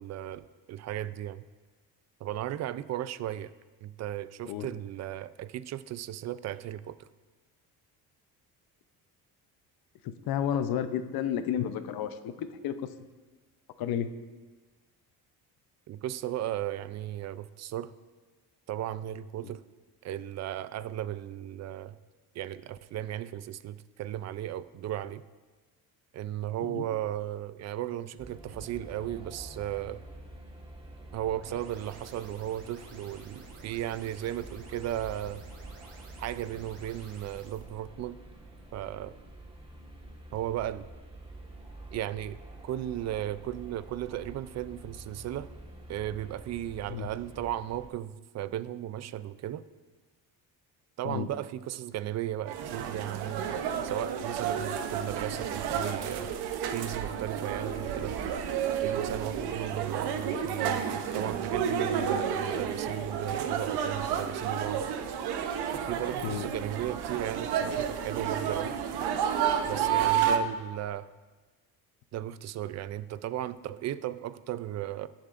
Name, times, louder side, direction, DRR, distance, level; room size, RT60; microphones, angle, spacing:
voice 1, 0.0-1.4 2.2-3.5 3.8-7.1 15.9-17.9 18.7-19.6 20.0-22.0 22.3-25.2 26.1-30.0 31.1-35.4 36.2-38.2 38.7-39.2 40.3-40.9 41.9-42.4 42.6-45.5 45.9-49.6 51.0-53.6 53.8-56.3 56.7-58.2 58.7-64.9 65.7-68.8 69.6-71.1 72.1-75.1, right 12 dB, 45° right, 15 dB, 0.4 m, -35 dB
voice 2, 10.0-12.7 13.8-14.1 26.7-26.8 46.9-47.1 51.0-51.3 66.2-66.5, left 9 dB, 70° left, 10 dB, 0.7 m, -31 dB
sound 1, 28.2-47.9, right 1 dB, 15° right, 1.5 m, -48 dB
sound 2, 30.8-37.6, right 3 dB, 70° right, 2.2 m, -52 dB
sound 3, 52.5-70.4, right 8 dB, 85° right, 0.8 m, -31 dB
18.0 x 7.1 x 2.5 m, 1.3 s
cardioid pair, 130°, 38 cm